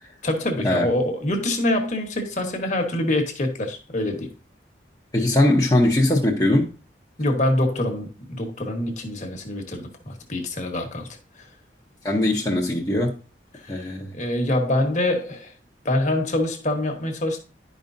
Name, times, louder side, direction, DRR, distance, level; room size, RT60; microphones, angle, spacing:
voice 1, 0.2-4.3 7.2-11.1 11.4-11.5 13.5-15.5 15.8-17.4, left 1 dB, 45° left, 1.3 m, -25 dB
voice 2, 5.1-6.7 12.0-13.1 13.7-14.1, left 1 dB, 20° left, 0.9 m, -20 dB
11.0 x 5.2 x 2.7 m
head